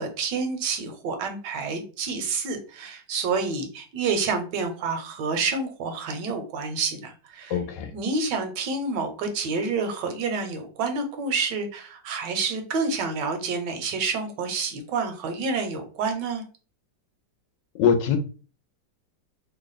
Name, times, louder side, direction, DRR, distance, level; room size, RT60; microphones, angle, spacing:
voice 1, 0.0-7.6 7.9-16.4, right 4 dB, 75° right, 1.3 m, -28 dB
voice 2, 7.5-7.9 17.7-18.2, left 7 dB, 75° left, 1.2 m, -22 dB
3.2 x 2.3 x 3.8 m
omnidirectional pair, 2.0 m